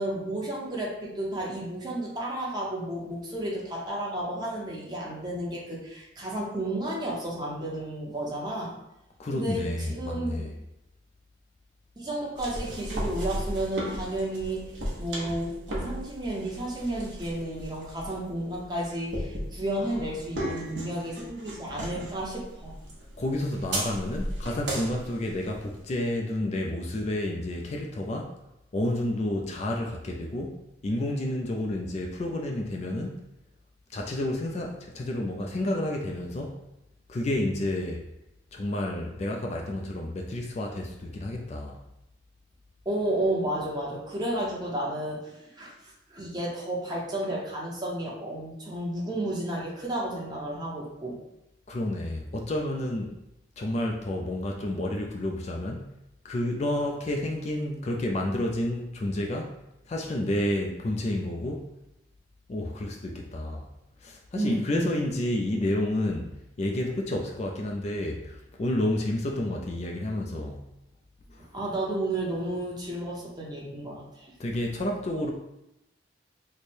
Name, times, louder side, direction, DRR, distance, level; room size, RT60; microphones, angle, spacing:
voice 1, 0.0-8.7 9.3-10.5 12.0-14.7 15.0-22.8 42.8-45.7 46.1-51.2 64.3-64.9 71.4-74.3, right 1 dB, 20° right, -4 dB, 0.8 m, -32 dB
voice 2, 9.2-10.5 19.8-20.0 23.2-28.4 28.7-33.2 33.9-36.6 37.1-38.0 38.5-41.8 51.7-53.1 53.6-55.9 56.2-59.6 59.9-61.7 62.5-63.7 64.0-70.7 71.3-71.5 74.4-75.3, left 1 dB, 35° left, 1 dB, 0.4 m, -30 dB
sound 1, 12.4-25.8, right 1 dB, 70° right, 0.9 m, -36 dB
3.2 x 2.1 x 4.3 m, 0.89 s
head